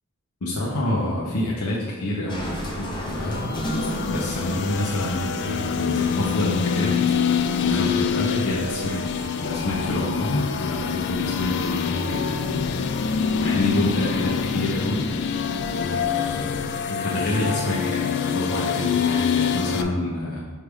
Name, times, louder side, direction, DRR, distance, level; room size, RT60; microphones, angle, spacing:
voice 1, 0.4-3.5 4.1-7.0 7.6-9.0 9.4-12.8 13.4-15.1 15.7-20.4, left 1 dB, 80° left, -5 dB, 0.9 m, -27 dB
sound 1, 2.3-16.6, equal, 20° left, 0.8 m, -38 dB
sound 2, 2.9-19.8, left 7 dB, 50° left, 0.3 m, -26 dB
6.7 x 3.3 x 4.8 m, 1.4 s
head